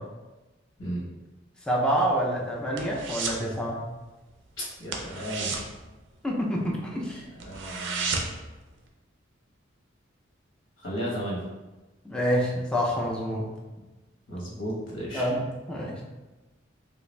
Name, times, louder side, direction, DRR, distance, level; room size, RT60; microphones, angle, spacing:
voice 1, 1.7-3.9 6.2-7.2 12.0-13.5 15.1-16.0, equal, 5° left, -3 dB, 0.4 m, -27 dB
sound 1, 1.9-3.5 3.8-4.1 4.3-4.5 4.8-6.7 7.1-7.2 7.4-8.5 8.9-9.0, right 4 dB, 65° right, 0.4 m, -33 dB
voice 2, 4.6-5.6 7.4-8.2 10.8-11.4 14.3-15.2, equal, 85° left, -4 dB, 1.1 m, -34 dB
3.4 x 2.4 x 3.1 m, 1.1 s
head